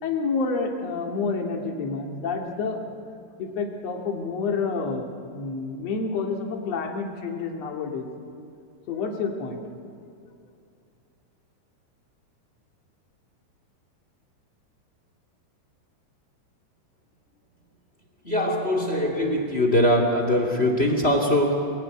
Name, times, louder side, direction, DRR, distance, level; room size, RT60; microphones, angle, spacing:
voice 1, 0.0-2.8 3.4-8.1 8.9-9.6, left 4 dB, 45° left, 2 dB, 2.5 m, -29 dB
voice 2, 18.2-21.7, equal, 25° left, 3 dB, 1.5 m, -22 dB
26.5 x 18.5 x 9.7 m, 2.4 s
omnidirectional pair, 5.3 m